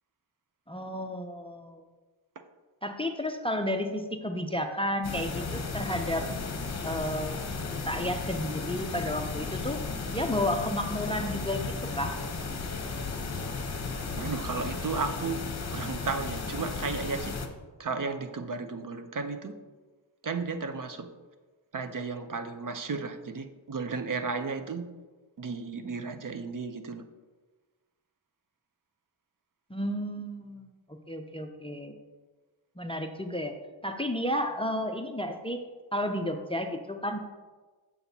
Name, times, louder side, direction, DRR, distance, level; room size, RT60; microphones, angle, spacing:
voice 1, 0.7-1.8 2.8-6.3 6.8-7.5 7.9-9.8 10.1-12.2 29.7-32.0 32.8-33.5 33.8-35.6 35.9-37.2, left 1 dB, 10° left, 6 dB, 0.4 m, -32 dB
sound 1, 5.0-17.5, left 4 dB, 35° left, 0.8 m, -35 dB
voice 2, 14.2-15.4 15.7-17.4 17.8-19.6 20.2-21.1 21.7-24.9 25.4-27.0, right 4 dB, 45° right, 8 dB, 0.6 m, -34 dB
7.7 x 7.0 x 2.7 m, 1.3 s
wide cardioid pair, 80°, 48 cm